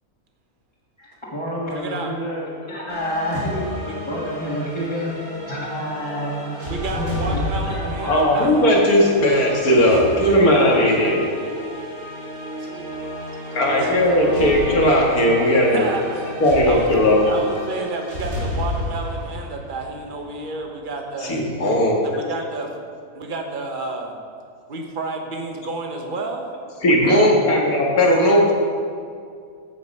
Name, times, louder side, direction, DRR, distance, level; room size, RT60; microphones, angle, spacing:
voice 1, 1.0-3.7 4.1-5.2 5.5-6.6 6.9-8.5, equal, 20° left, -7 dB, 1.5 m, -28 dB
voice 2, 1.7-2.1 3.8-4.0 4.6-4.7 6.7-8.8 11.0-11.2 11.5-11.7 12.5-13.2 13.7-14.0 15.7-16.9 17.3-21.4 22.0-22.7 23.1-24.1 24.7-26.5 26.8-27.3, right 3 dB, 40° right, 2 dB, 1.2 m, -31 dB
sound 1, 2.9-20.5, equal, 70° right, 3.4 m, -31 dB
voice 3, 8.1-11.3 13.5-15.8 16.4-17.4 21.2-22.1 26.8-28.5, left 1 dB, 80° left, -2 dB, 2.2 m, -17 dB
15.0 x 5.3 x 5.4 m, 2.3 s
omnidirectional pair, 1.5 m